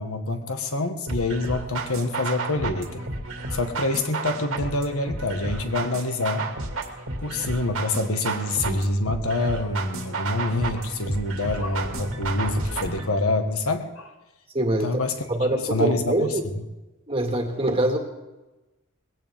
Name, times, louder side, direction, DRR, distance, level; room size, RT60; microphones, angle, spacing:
voice 1, 0.0-3.0 3.5-6.5 7.2-14.1 14.8-15.2 15.6-16.3, left 2 dB, 80° left, 6 dB, 1.5 m, -26 dB
sound 1, 1.1-13.1, right 3 dB, 70° right, 2.2 m, -32 dB
voice 2, 14.5-15.0 15.3-16.4 17.1-18.0, right 1 dB, 25° right, 3 dB, 1.9 m, -24 dB
20.5 x 17.0 x 3.6 m, 1.1 s
head